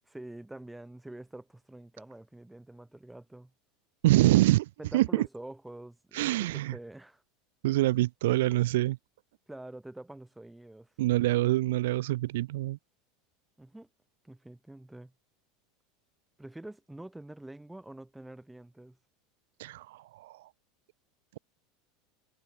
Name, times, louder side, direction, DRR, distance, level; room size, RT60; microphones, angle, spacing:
voice 1, 0.1-3.5 4.8-7.2 9.5-10.9 13.6-13.9 14.2-15.1 16.4-19.0, right 1 dB, 5° right, 4.2 m, -46 dB
voice 2, 4.0-5.3 6.1-6.7 7.6-9.0 11.0-12.8 19.6-20.5, right 17 dB, 90° right, 0.5 m, -25 dB
supercardioid pair, 170°, 0 cm